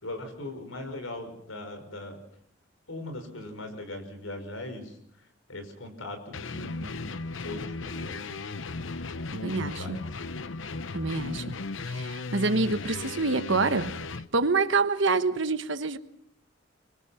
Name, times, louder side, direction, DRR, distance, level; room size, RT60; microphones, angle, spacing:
voice 1, 0.0-2.2 2.9-7.1 7.4-8.2 9.4-10.0, left 1 dB, 90° left, 5.5 m, -40 dB
sound 1, 6.3-14.3, left 3 dB, 70° left, 0.9 m, -36 dB
voice 2, 9.3-10.0 10.9-11.6 11.8-13.9 14.3-16.0, right 3 dB, 65° right, 1.2 m, -26 dB
25.5 x 24.0 x 5.8 m
head